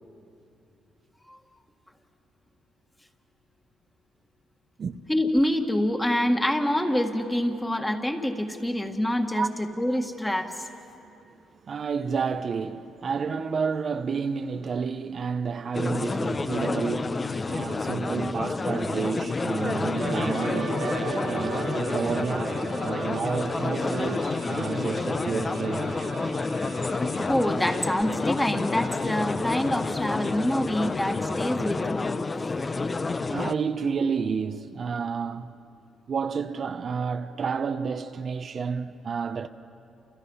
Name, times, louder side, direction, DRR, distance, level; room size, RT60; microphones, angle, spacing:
voice 1, 5.1-10.7 23.2-23.3 27.2-32.1, left 1 dB, 10° left, 1.8 m, -26 dB
voice 2, 11.6-20.9 21.2-26.0 33.3-35.6 36.1-39.5, right 5 dB, 50° right, 0.8 m, -30 dB
sound 1, 15.7-33.5, left 3 dB, 30° left, 0.8 m, -29 dB
sound 2, 20.0-28.7 28.9-29.2, right 5 dB, 80° right, 2.9 m, -37 dB
29.5 x 28.5 x 5.7 m
cardioid pair, 90°, 0 cm